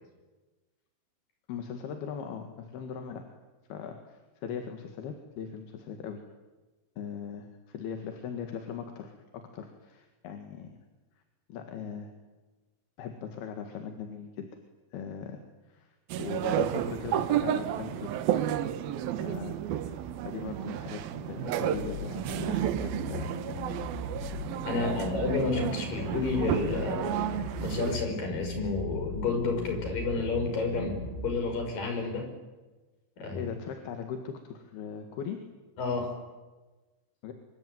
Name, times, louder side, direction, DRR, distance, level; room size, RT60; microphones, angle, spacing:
voice 1, 1.5-3.2 3.7-6.2 7.0-10.8 11.5-12.1 13.0-14.5 14.9-15.4 15.7-18.1 19.2-20.0 20.3-23.6 24.7-25.2 33.3-35.4 37.2-37.3, left 7 dB, 60° left, 5 dB, 3.5 m, -39 dB
sound 1, 16.1-28.0, right 11 dB, 75° right, 2.3 m, -32 dB
sound 2, 21.7-31.4, left 2 dB, 85° left, 9.7 m, -39 dB
voice 2, 24.6-27.2 27.6-32.3 33.2-33.5 35.8-36.1, left 4 dB, 45° left, 4 dB, 6.8 m, -30 dB
25.0 x 25.0 x 9.3 m, 1.2 s
omnidirectional pair, 5.6 m